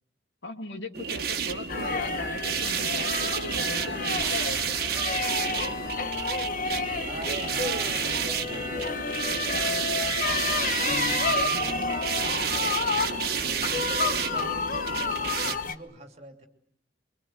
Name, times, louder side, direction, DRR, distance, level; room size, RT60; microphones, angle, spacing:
voice 1, 0.4-4.8, left 1 dB, 75° left, 5 dB, 2.8 m, -38 dB
sound 1, 0.9-15.5, right 7 dB, 55° right, 1.5 m, -30 dB
sound 2, 1.7-15.7, left 4 dB, 50° left, 1.1 m, -30 dB
sound 3, 4.2-8.4, right 3 dB, 15° right, 2.0 m, -45 dB
voice 2, 7.1-11.0 11.3-13.0 13.4-16.5, right 2 dB, 35° right, 5 dB, 3.1 m, -43 dB
25.5 x 24.5 x 8.1 m, 0.67 s
head